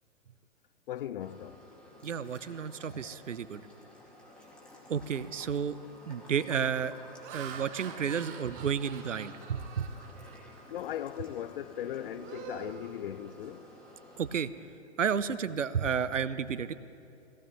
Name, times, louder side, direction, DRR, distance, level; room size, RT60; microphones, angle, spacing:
voice 1, 0.9-1.6 10.7-13.7, left 11 dB, 50° left, 0.5 m, -38 dB
sound 1, 1.2-14.4, left 1 dB, 5° left, 2.1 m, -53 dB
voice 2, 2.0-3.7 4.9-5.8 6.1-6.9 7.3-9.9 14.2-14.5 15.0-16.7, right 7 dB, 90° right, 0.7 m, -31 dB
Laughter, 5.1-5.4 6.0-6.3 6.9-10.7 11.1-11.4 11.8-13.7, right 7 dB, 20° right, 0.7 m, -48 dB
18.5 x 16.5 x 3.1 m
hypercardioid pair, 120°, 36 cm